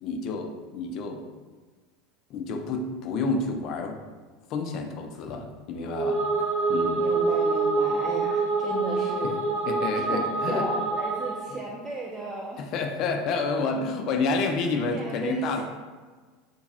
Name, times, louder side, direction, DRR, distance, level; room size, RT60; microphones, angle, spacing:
voice 1, 0.0-1.3 2.3-4.0 4.5-6.2 6.7-7.1 9.2-9.3 9.7-10.7 11.5-11.6 12.6-15.6, left 4 dB, 45° left, 4 dB, 0.3 m, -29 dB
sound 1, 5.8-11.5, right 3 dB, 90° right, 0.8 m, -26 dB
voice 2, 7.0-9.4 9.9-12.7 14.7-15.6, right 3 dB, 25° right, -2 dB, 0.4 m, -35 dB
3.2 x 2.2 x 2.7 m, 1.4 s
figure-of-eight pair, 75°, 0 cm